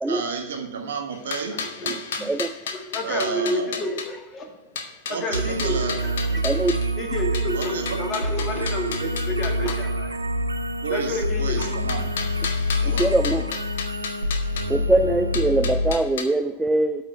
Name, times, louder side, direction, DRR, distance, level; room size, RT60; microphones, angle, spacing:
voice 1, 0.1-1.6 3.0-3.8 5.1-6.0 7.5-8.0 9.0-9.1 10.8-12.1 12.8-13.1, right 5 dB, 60° right, 4 dB, 1.3 m, -31 dB
sound 1, 1.1-4.1 4.8-6.9 7.3-9.8 11.6-14.7 15.3-16.2, left 6 dB, 60° left, 1.0 m, -33 dB
voice 2, 1.5-2.3 2.7-4.5 5.1-6.3 7.0-10.2 10.9-11.8, left 1 dB, 25° left, 1 dB, 2.0 m, -30 dB
sound 2, 5.3-15.9, equal, 80° right, 0.5 m, -26 dB
voice 3, 12.9-13.5 14.7-17.0, right 2 dB, 5° right, 8 dB, 0.4 m, -22 dB
8.7 x 5.1 x 7.0 m, 1.1 s
figure-of-eight pair, 90°, 0 cm